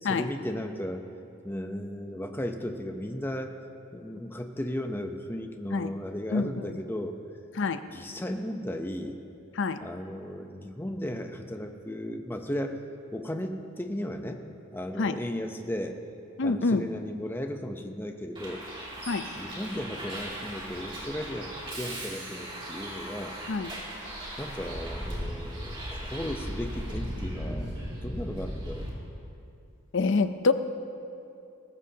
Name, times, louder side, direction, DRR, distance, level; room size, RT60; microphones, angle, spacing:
voice 1, 0.0-1.1 1.4-3.6 3.9-7.2 7.9-9.2 9.8-12.8 13.1-14.5 14.7-16.0 16.4-18.6 19.3-23.4 24.4-28.9, equal, 10° left, 5 dB, 0.7 m, -35 dB
voice 2, 16.4-16.8 19.1-19.3 23.5-23.7 29.9-30.5, left 4 dB, 60° left, 11 dB, 0.6 m, -26 dB
Bus, 18.3-28.9, equal, 25° right, 2.6 m, -37 dB
19.5 x 15.5 x 2.8 m, 2.6 s
head